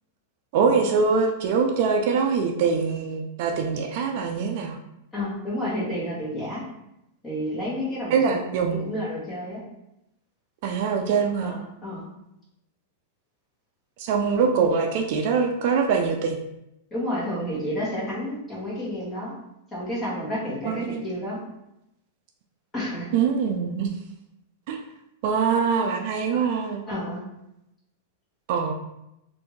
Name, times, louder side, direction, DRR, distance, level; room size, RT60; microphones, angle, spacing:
voice 1, 0.5-4.8 8.1-8.9 10.6-11.5 14.0-16.4 20.6-21.1 23.1-23.9 24.7-24.8 25.2-26.9 28.5-28.7, right 5 dB, 55° right, 3 dB, 0.4 m, -23 dB
voice 2, 5.1-6.6 7.2-8.5 8.8-9.6 11.4-12.0 16.9-19.3 19.7-21.4 22.7-23.1 26.9-27.2, equal, 15° left, -7 dB, 1.5 m, -30 dB
3.2 x 2.6 x 3.1 m, 0.84 s
supercardioid pair, 135°, 0 cm